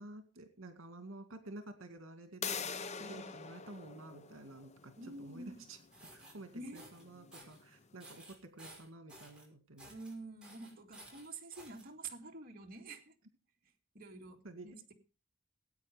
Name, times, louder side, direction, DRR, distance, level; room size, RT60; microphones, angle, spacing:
voice 1, 0.0-2.7 3.0-5.8 6.1-9.9 14.4-14.7, right 2 dB, 75° right, 8 dB, 2.2 m, -51 dB
sound 1, 2.4-8.0, left 6 dB, 35° left, 0.7 m, -46 dB
voice 2, 5.0-5.6 6.5-6.9 9.9-13.1 13.9-14.4 14.6-14.9, right 2 dB, 45° right, 1 dB, 2.1 m, -48 dB
sound 2, 5.8-6.3 6.7-7.0 7.3-7.6 8.0-9.5 9.8-10.1 10.4-11.8, right 1 dB, 5° right, 5.7 m, -55 dB
19.0 x 9.0 x 5.1 m, 0.35 s
head